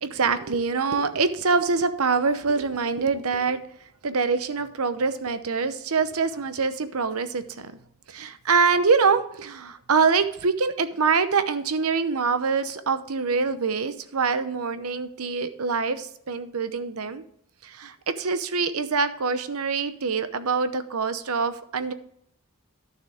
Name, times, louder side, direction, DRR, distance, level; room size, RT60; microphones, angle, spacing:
voice 1, 0.0-3.6 4.0-7.7 8.1-17.2 17.6-21.9, right 5 dB, 80° right, 11 dB, 0.8 m, -25 dB
12.0 x 6.6 x 3.6 m, 0.71 s
head